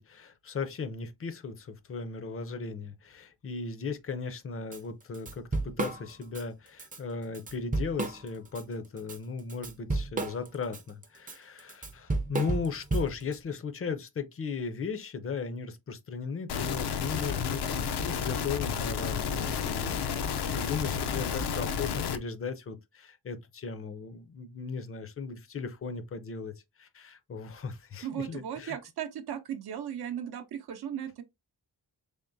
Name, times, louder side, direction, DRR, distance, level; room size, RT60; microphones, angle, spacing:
voice 1, 0.0-20.2 20.5-26.5 26.8-28.8, left 5 dB, 35° left, 0.5 m, -37 dB
Drum kit / Drum, 4.7-4.8 5.1-6.4 6.8-7.0 7.3-8.6 9.0-13.4, right 2 dB, 20° right, 0.5 m, -32 dB
sound 1, 16.5-22.2, left 7 dB, 80° left, 0.6 m, -31 dB
voice 2, 28.0-31.2, right 9 dB, 75° right, 0.6 m, -36 dB
3.6 x 3.5 x 2.6 m
wide cardioid pair, 160°, 39 cm